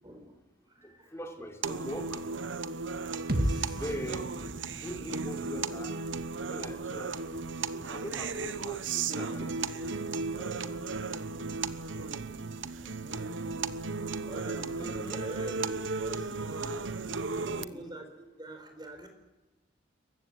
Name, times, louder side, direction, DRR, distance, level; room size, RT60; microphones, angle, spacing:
voice 1, 0.0-1.2 2.8-4.1 7.8-8.0 12.2-13.0 14.2-16.8 17.3-19.1, right 1 dB, 25° right, 6 dB, 4.3 m, -46 dB
voice 2, 0.8-2.2 3.8-4.4 4.8-6.0 6.5-7.1 7.6-10.0 10.3-11.1 14.5-14.9 16.1-16.8 17.4-17.9, equal, 15° left, 2 dB, 3.3 m, -42 dB
sound 1, 1.6-17.6, right 4 dB, 85° right, 1.0 m, -35 dB
sound 2, 3.3-7.2, right 1 dB, 55° right, 2.0 m, -36 dB
27.5 x 15.5 x 9.7 m, 1.1 s
head